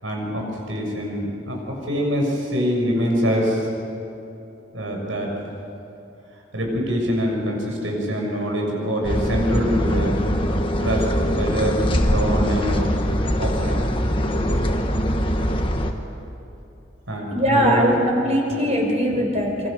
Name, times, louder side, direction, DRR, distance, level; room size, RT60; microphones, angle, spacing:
voice 1, 0.0-1.6 1.9-3.7 4.7-5.5 6.5-10.2 10.8-11.7 12.1-13.0 13.4-13.9 17.1-18.0 18.5-18.6 19.1-19.2, equal, 85° right, 0 dB, 6.9 m, -24 dB
sound 1, 9.0-15.9, equal, 25° left, 1.6 m, -22 dB
voice 2, 17.3-19.7, equal, 35° right, 0 dB, 4.7 m, -21 dB
27.5 x 24.5 x 6.7 m, 2.8 s
head